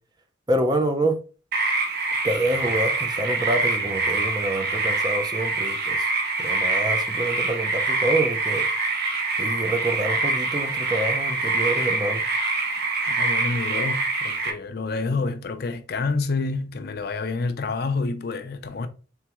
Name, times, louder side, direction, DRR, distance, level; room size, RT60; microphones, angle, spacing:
voice 1, 0.5-1.2 2.2-6.1 6.4-8.6 9.4-12.2, right 1 dB, 20° right, 0.5 m, -27 dB
sound 1, 1.5-14.5, right 3 dB, 55° right, 0.8 m, -25 dB
voice 2, 13.1-18.9, left 3 dB, 55° left, 0.5 m, -28 dB
3.9 x 3.5 x 3.0 m
head